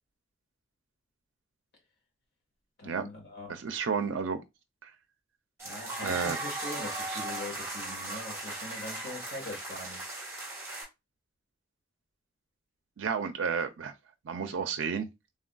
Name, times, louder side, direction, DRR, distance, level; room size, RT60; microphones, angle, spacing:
voice 1, 2.8-3.6 5.6-10.1, left 2 dB, 55° left, 1.4 m, -42 dB
voice 2, 3.5-4.4 4.8-4.9 6.0-6.4 7.1-7.2 13.0-13.9 14.3-15.1, right 6 dB, 75° right, 0.4 m, -31 dB
sound 1, 5.6-10.8, right 2 dB, 15° right, 1.1 m, -37 dB
3.4 x 2.4 x 2.2 m
head